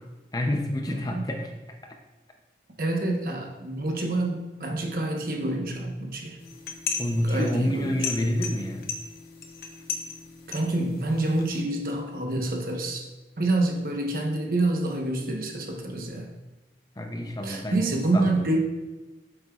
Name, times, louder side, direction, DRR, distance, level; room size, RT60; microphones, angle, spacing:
voice 1, 0.3-1.5 1.8-2.0 7.0-8.9 17.0-18.5, left 1 dB, 20° left, 3 dB, 0.6 m, -28 dB
voice 2, 0.9-1.3 2.8-6.4 7.2-8.1 10.5-13.1 13.4-16.3 17.4-18.6, right 2 dB, 50° right, 2 dB, 1.0 m, -27 dB
sound 1, 6.4-11.6, left 6 dB, 55° left, 0.8 m, -36 dB
8.6 x 6.7 x 2.4 m, 1.2 s
head